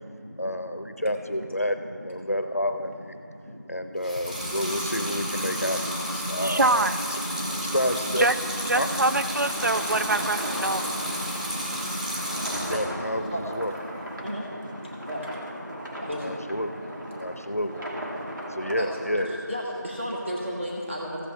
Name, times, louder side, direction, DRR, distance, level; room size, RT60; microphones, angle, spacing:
voice 1, 0.4-3.1 3.7-5.8 6.1-7.2 7.7-8.3 8.7-8.9 12.7-13.7 16.2-16.7 17.2-17.8 18.5-19.4, equal, 50° left, 8 dB, 0.6 m, -29 dB
Water tap faucet / Sink (filling or washing) / Liquid, 4.0-12.9 13.3-14.0, equal, 25° right, 1.7 m, -31 dB
voice 2, 6.4-7.0 7.5-7.6 8.2-8.3 8.7-11.0, right 2 dB, 65° right, 12 dB, 0.4 m, -25 dB
sound 1, 7.9-19.2, equal, 85° right, 2.4 m, -38 dB
voice 3, 14.2-14.7 15.1-15.2 16.0-16.3 16.7-17.2 17.9-18.0 18.8-21.2, equal, 40° right, -4 dB, 1.2 m, -33 dB
15.0 x 8.4 x 3.3 m, 2.7 s
figure-of-eight pair, 180°, 10 cm